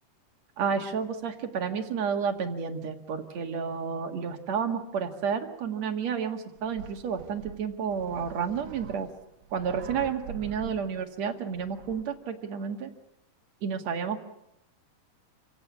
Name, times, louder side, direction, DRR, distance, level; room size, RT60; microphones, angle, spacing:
voice 1, 0.6-9.1 9.5-12.9 13.6-14.2, right 6 dB, 50° right, 6 dB, 2.6 m, -31 dB
sound 1, 6.6-12.0, right 7 dB, 75° right, 3.5 m, -45 dB
27.5 x 17.5 x 8.6 m, 0.81 s
omnidirectional pair, 4.8 m